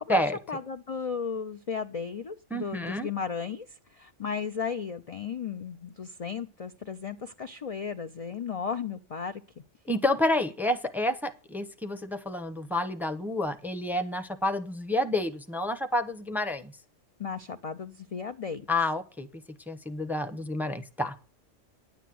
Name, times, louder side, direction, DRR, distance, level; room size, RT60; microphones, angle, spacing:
voice 1, 0.5-9.4 17.2-18.7, left 6 dB, 45° left, 7 dB, 0.5 m, -35 dB
voice 2, 2.5-3.1 9.9-16.7 18.7-19.3 19.7-21.1, left 1 dB, ahead, 11 dB, 0.7 m, -29 dB
10.0 x 8.3 x 7.6 m, 0.38 s
omnidirectional pair, 1.3 m